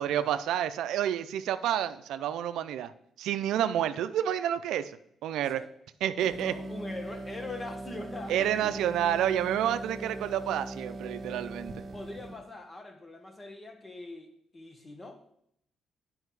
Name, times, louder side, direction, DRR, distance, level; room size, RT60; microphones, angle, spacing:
voice 1, 0.0-2.9 3.2-5.0 5.2-5.6 6.0-6.5 8.3-11.8, right 10 dB, 85° right, 12 dB, 0.4 m, -29 dB
sound 1, 6.2-12.4, right 2 dB, 30° right, 1.6 m, -40 dB
voice 2, 6.4-8.7 11.9-15.2, left 2 dB, 25° left, 6 dB, 1.4 m, -42 dB
8.9 x 5.3 x 4.7 m, 0.73 s
cardioid pair, 90°, 0 cm